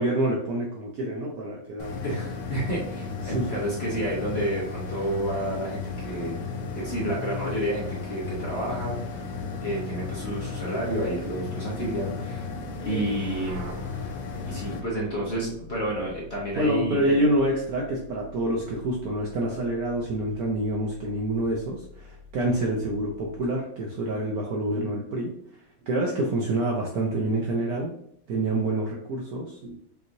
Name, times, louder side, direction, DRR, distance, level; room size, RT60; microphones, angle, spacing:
voice 1, 0.0-2.0 3.2-3.5 16.6-25.3 25.8-27.9 28.3-29.8, right 1 dB, 65° right, -1 dB, 0.9 m, -27 dB
sound 1, 1.8-14.8, left 4 dB, 90° left, 1.5 m, -34 dB
voice 2, 2.0-6.4 6.7-9.2 9.6-12.5 12.8-13.7 14.5-17.1, right 1 dB, 40° left, -5 dB, 1.0 m, -30 dB
sound 2, 12.5-23.6, right 2 dB, 80° right, 1.4 m, -45 dB
5.4 x 3.0 x 2.7 m, 0.67 s
omnidirectional pair, 2.1 m